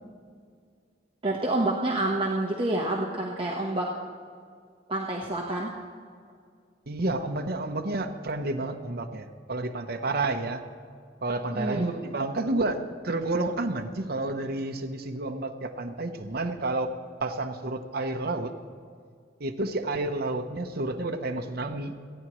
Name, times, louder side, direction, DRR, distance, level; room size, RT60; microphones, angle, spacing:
voice 1, 1.2-3.8 4.9-5.7 11.5-11.9, right 2 dB, 30° right, -3 dB, 1.1 m, -28 dB
voice 2, 6.9-10.6 11.2-18.5 19.4-22.1, right 2 dB, 55° right, 4 dB, 0.8 m, -30 dB
28.5 x 9.8 x 3.1 m, 2.2 s
head